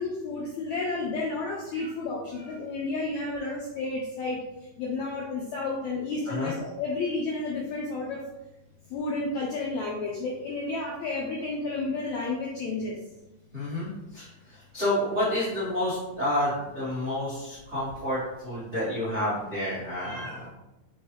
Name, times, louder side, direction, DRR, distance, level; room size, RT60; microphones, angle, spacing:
voice 1, 0.0-4.4 4.8-8.2 8.9-12.9, left 3 dB, 85° left, -2 dB, 1.6 m, -31 dB
voice 2, 13.5-13.9 14.1-14.3 14.7-20.5, left 1 dB, 60° right, -12 dB, 0.7 m, -29 dB
5.0 x 3.1 x 3.2 m, 0.97 s
omnidirectional pair, 4.0 m